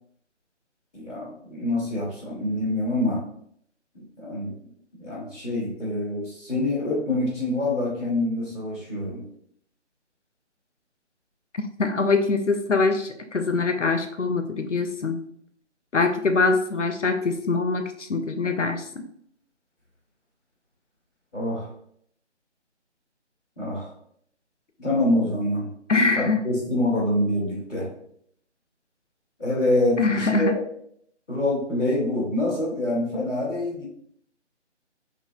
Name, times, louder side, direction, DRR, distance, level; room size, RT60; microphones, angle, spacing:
voice 1, 0.9-3.2 3.9-4.5 4.9-9.2 21.3-21.7 23.6-23.9 24.8-25.7 26.1-27.9 29.4-30.6 31.3-33.8, left 1 dB, 5° left, -16 dB, 0.8 m, -26 dB
voice 2, 11.8-15.2 15.9-18.9 25.9-26.4 30.0-30.5, left 3 dB, 80° left, 7 dB, 0.7 m, -23 dB
6.4 x 3.2 x 2.3 m, 0.67 s
figure-of-eight pair, 155°, 35 cm